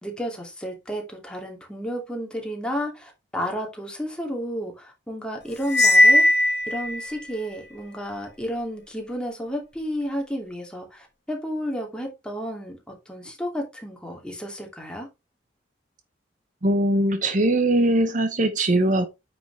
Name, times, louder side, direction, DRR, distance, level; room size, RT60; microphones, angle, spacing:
voice 1, 0.0-6.3 6.7-15.1, equal, 5° left, 2.5 m, -32 dB
Cymbal, 5.7-7.1, left 1 dB, 60° left, 1.3 m, -17 dB
voice 2, 16.6-19.1, right 1 dB, 45° right, 0.9 m, -21 dB
9.2 x 6.0 x 3.3 m
head